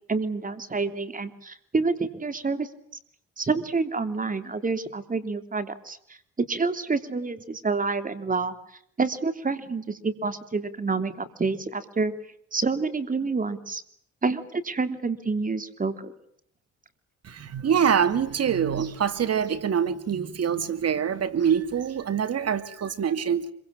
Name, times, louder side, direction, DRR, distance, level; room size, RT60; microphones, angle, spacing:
voice 1, 0.1-2.7 3.4-8.5 9.0-12.1 12.5-13.8 14.2-16.1, right 4 dB, 25° right, 10 dB, 3.2 m, -28 dB
voice 2, 17.2-23.5, right 8 dB, 55° right, 12 dB, 2.5 m, -25 dB
26.5 x 24.0 x 8.8 m, 0.68 s
cardioid pair, 90°, 30 cm